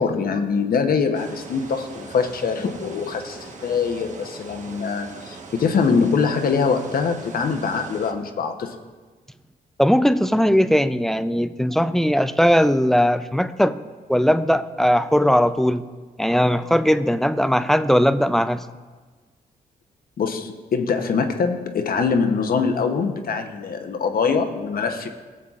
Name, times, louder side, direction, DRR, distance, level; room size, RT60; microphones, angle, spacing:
voice 1, 0.0-8.8 20.2-25.1, left 5 dB, 65° left, 5 dB, 0.8 m, -23 dB
sound 1, 1.1-8.1, right 3 dB, 45° right, 1.1 m, -41 dB
voice 2, 9.8-13.8 14.1-15.9 16.2-18.6, equal, ahead, 12 dB, 0.3 m, -19 dB
16.5 x 7.4 x 2.4 m, 1.4 s
cardioid pair, 85°, 17 cm